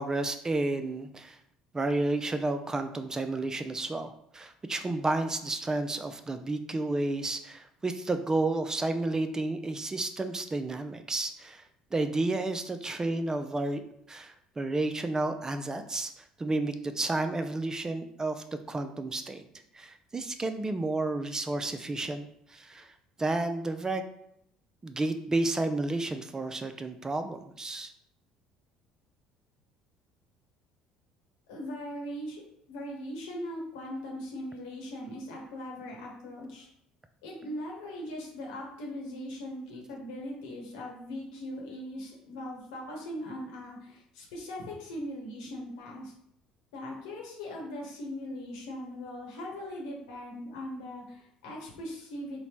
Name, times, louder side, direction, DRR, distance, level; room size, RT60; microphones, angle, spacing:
voice 1, 0.0-1.4 1.7-11.6 11.9-13.8 14.1-19.4 19.7-22.9 23.2-24.0 24.8-27.9, right 2 dB, 20° right, 8 dB, 0.3 m, -31 dB
voice 2, 31.5-32.4 32.7-36.7 37.2-46.1 46.7-52.4, left 1 dB, 80° left, -2 dB, 1.1 m, -40 dB
3.8 x 2.1 x 3.0 m, 0.73 s
hypercardioid pair, 65°, 3 cm